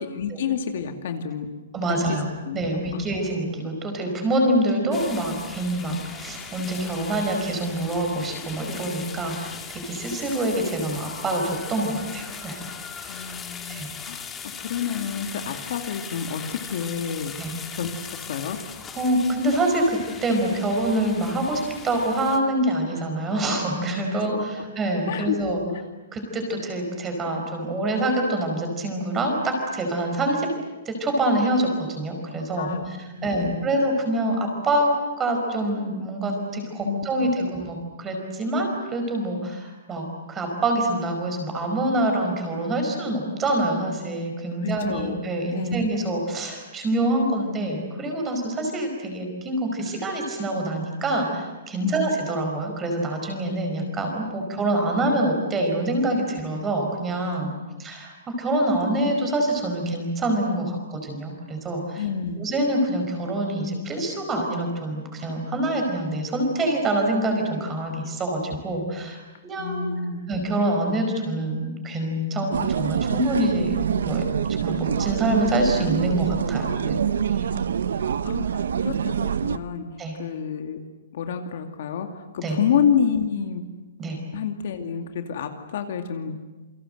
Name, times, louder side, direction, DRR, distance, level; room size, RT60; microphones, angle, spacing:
voice 1, 0.0-1.5 1.9-2.2 2.4-3.0 13.1-14.3 14.6-17.3 17.7-18.6 24.3-24.6 25.1-25.4 25.7-25.8 32.6-32.9 33.2-33.6 36.8-37.5 44.6-45.2 45.5-45.8 51.8-51.9 62.0-62.4 69.6-70.2 77.5-79.9 80.2-80.8 81.1-83.6 84.3-86.4, left 7 dB, 50° left, 6 dB, 2.4 m, -29 dB
voice 2, 1.7-2.3 2.5-12.6 13.0-13.3 13.7-13.9 17.4-17.5 19.0-25.6 26.1-30.6 30.8-34.9 35.2-57.5 57.8-58.1 58.4-62.0 62.3-69.9 70.3-73.8 74.0-74.2 74.6-77.0 77.3-77.5 80.0-80.1 82.4-82.6 84.0-84.2, right 1 dB, 10° right, 2 dB, 5.0 m, -26 dB
sound 1, 4.9-22.4, left 6 dB, 10° left, 2.0 m, -39 dB
sound 2, 72.5-79.6, right 7 dB, 90° right, 1.0 m, -25 dB
28.5 x 24.5 x 7.9 m, 1.1 s
hypercardioid pair, 175°, 0 cm